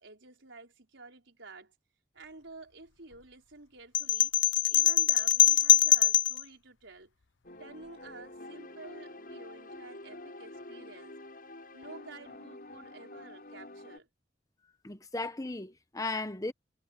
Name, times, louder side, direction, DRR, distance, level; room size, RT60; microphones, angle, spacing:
voice 1, 0.0-1.7 2.1-4.3 4.7-7.1 7.6-11.2 11.7-14.1, right 3 dB, 75° right, 4.8 m, -50 dB
sound 1, 3.9-6.4, left 11 dB, 80° left, 0.7 m, -23 dB
sound 2, 7.4-14.0, left 2 dB, 50° left, 5.0 m, -47 dB
voice 2, 14.8-16.5, left 2 dB, 20° left, 0.9 m, -36 dB
head